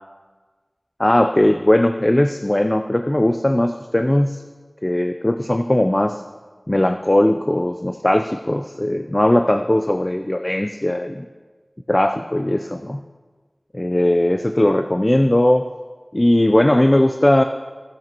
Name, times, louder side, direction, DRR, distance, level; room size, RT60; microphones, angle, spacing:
voice 1, 1.0-4.4 4.8-6.2 6.7-11.3 11.9-13.0 13.7-15.6 16.1-17.4, left 1 dB, 35° left, 7 dB, 0.4 m, -18 dB
15.0 x 9.1 x 2.9 m, 1.4 s
wide cardioid pair, 40°, 0 cm